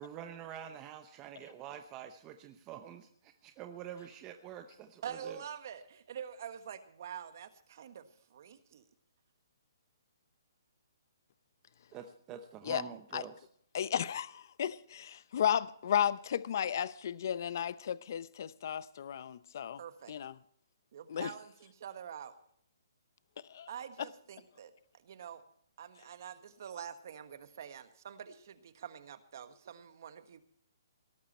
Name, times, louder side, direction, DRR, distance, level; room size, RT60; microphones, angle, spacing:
voice 1, 0.0-5.4 11.9-13.5, right 9 dB, 20° right, 0.8 m, -47 dB
voice 2, 5.0-8.8 19.8-20.1 20.9-22.3 23.7-25.4 25.8-30.4, right 8 dB, 50° right, 1.5 m, -46 dB
voice 3, 13.7-19.8 20.1-20.3 21.1-21.3 23.5-23.7, left 9 dB, 50° left, 0.7 m, -34 dB
18.0 x 12.5 x 4.3 m
hypercardioid pair, 160°, 2 cm